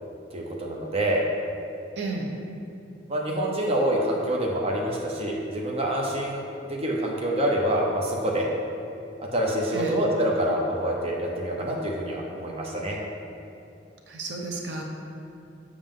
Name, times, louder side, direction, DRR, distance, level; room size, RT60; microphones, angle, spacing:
voice 1, 0.3-1.3 3.1-8.5 9.2-13.0, right 1 dB, 35° right, -2 dB, 0.8 m, -26 dB
voice 2, 2.0-2.3 9.7-10.0 14.1-14.8, right 3 dB, 70° right, 0 dB, 0.9 m, -32 dB
7.2 x 6.3 x 3.7 m, 2.6 s
head